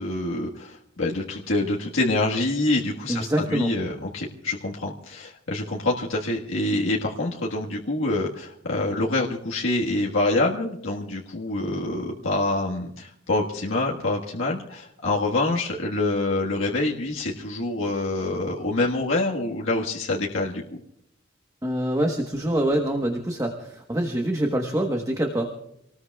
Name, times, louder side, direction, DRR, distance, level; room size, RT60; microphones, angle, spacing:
voice 1, 0.0-20.8, left 2 dB, 80° left, -2 dB, 1.6 m, -26 dB
voice 2, 3.1-3.7 21.6-25.6, right 1 dB, 15° right, 2 dB, 1.2 m, -25 dB
27.5 x 19.5 x 2.4 m, 0.75 s
head